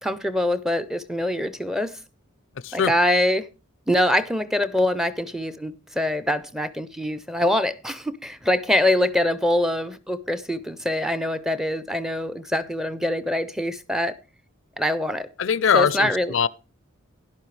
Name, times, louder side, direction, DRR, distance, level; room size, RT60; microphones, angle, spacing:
voice 1, 0.0-2.0 2.7-3.5 3.9-14.1 14.8-15.3 15.7-16.3, left 1 dB, ahead, 0.5 m, -24 dB
voice 2, 15.4-16.5, left 7 dB, 60° left, 0.4 m, -21 dB
11.5 x 11.0 x 3.2 m
head